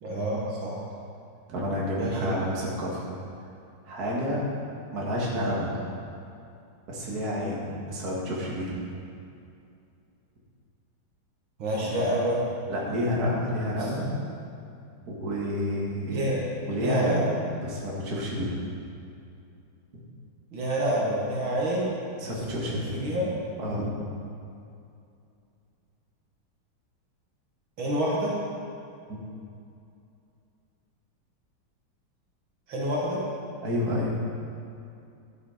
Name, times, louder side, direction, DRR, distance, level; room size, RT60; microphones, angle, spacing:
voice 1, 0.0-0.8 2.0-2.4 11.6-12.5 13.8-13.9 16.1-16.4 16.8-17.3 20.5-21.9 22.2-22.6 22.9-23.3 27.8-28.3 32.7-33.2, equal, 75° right, -5 dB, 2.4 m, -28 dB
voice 2, 1.5-3.1 3.9-4.4 4.9-5.8 6.9-8.8 11.8-11.9 12.7-14.2 15.1-16.3 16.7-17.3 17.6-18.6 22.2-23.1 23.6-23.9 33.6-34.2, equal, 50° right, -5 dB, 2.3 m, -29 dB
11.5 x 7.9 x 5.0 m, 2.5 s
omnidirectional pair, 2.2 m